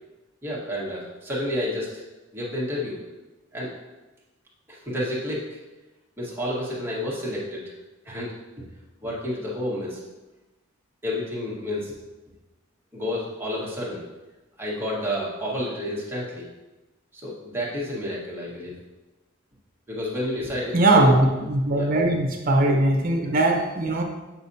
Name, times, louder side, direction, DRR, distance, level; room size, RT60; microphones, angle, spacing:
voice 1, 0.4-2.0 2.3-3.0 3.5-3.7 4.7-5.6 6.2-7.6 8.0-8.7 9.0-10.0 11.0-12.0 12.9-14.0 14.6-16.5 17.1-18.8 19.9-21.1 21.7-21.9, left 1 dB, 10° right, -6 dB, 1.5 m, -30 dB
voice 2, 20.7-24.0, right 2 dB, 45° right, 3 dB, 1.0 m, -20 dB
7.5 x 6.1 x 2.8 m, 1.1 s
head